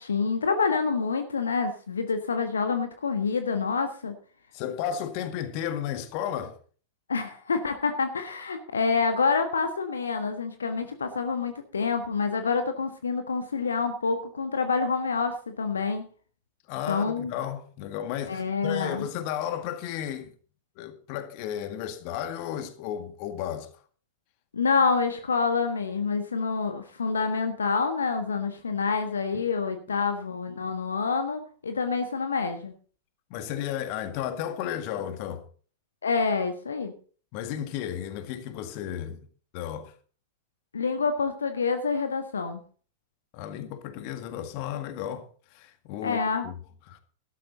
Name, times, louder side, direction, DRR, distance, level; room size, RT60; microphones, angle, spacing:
voice 1, 0.0-4.1 7.1-16.1 16.9-17.3 18.3-19.1 24.5-32.7 36.0-36.9 40.7-42.6 46.0-46.5, left 5 dB, 70° left, 1.4 m, -27 dB
voice 2, 4.5-6.6 16.7-20.3 20.8-23.7 29.3-29.5 33.3-35.4 37.3-39.2 39.5-39.9 43.3-45.3 45.5-46.5 46.9-47.0, left 10 dB, 45° left, 1.8 m, -33 dB
13.0 x 12.5 x 3.9 m
figure-of-eight pair, 90°, 0 cm